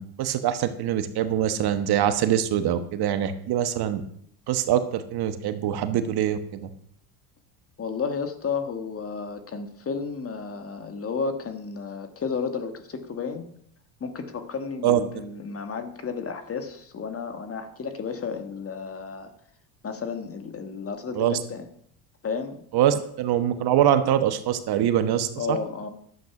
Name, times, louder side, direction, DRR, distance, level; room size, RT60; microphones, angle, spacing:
voice 1, 0.0-4.0 4.5-6.7 14.8-15.0 21.1-21.4 22.7-25.6, right 10 dB, 50° right, 10 dB, 1.2 m, -24 dB
voice 2, 7.8-13.5 14.0-19.3 19.8-21.6 22.2-22.6 25.4-25.9, left 5 dB, 30° left, 8 dB, 1.5 m, -32 dB
12.0 x 8.1 x 5.9 m, 0.68 s
supercardioid pair, 105°, 49 cm